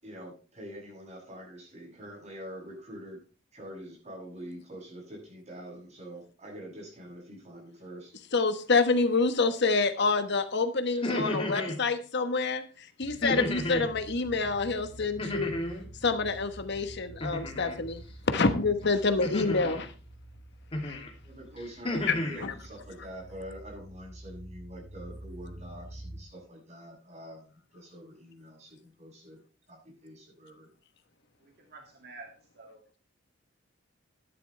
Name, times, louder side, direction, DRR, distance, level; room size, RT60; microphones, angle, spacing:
voice 1, 0.0-3.2 3.5-8.2 20.9-21.0 21.2-29.4 29.7-30.7, equal, 35° right, -1 dB, 7.8 m, -45 dB
voice 2, 8.3-15.5 16.0-18.0 18.3-19.9 20.8-21.0 22.1-22.5, left 3 dB, 60° left, 9 dB, 1.2 m, -27 dB
sound 1, 10.9-11.8 13.2-13.9 15.2-15.9 17.2-17.8 19.2-19.9 20.7-21.1 21.6-22.4, left 1 dB, 30° left, 2.7 m, -32 dB
sound 2, 13.0-26.2, right 1 dB, 20° right, 6.5 m, -48 dB
voice 3, 31.4-32.3 32.5-33.0, right 3 dB, 55° right, 1 dB, 2.3 m, -50 dB
13.5 x 11.0 x 3.3 m, 0.37 s
head